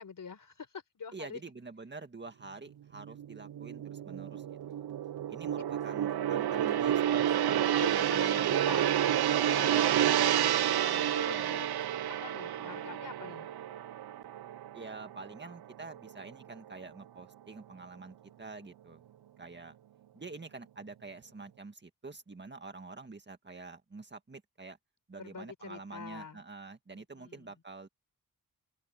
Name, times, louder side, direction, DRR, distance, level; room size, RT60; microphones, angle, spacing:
voice 1, 0.0-1.4 6.5-6.9 7.7-11.7 12.2-13.5 25.2-26.4 26.9-27.5, left 5 dB, 60° left, 4.2 m, -45 dB
voice 2, 1.1-4.8 5.3-8.9 9.7-10.4 11.3-11.6 14.7-19.0 19.4-19.8 20.1-24.8 25.1-27.9, right 3 dB, 30° right, 1.9 m, -47 dB
Gong, 3.0-15.5 15.8-16.1, right 11 dB, 85° right, 0.7 m, -30 dB
open air
wide cardioid pair, 115°, 37 cm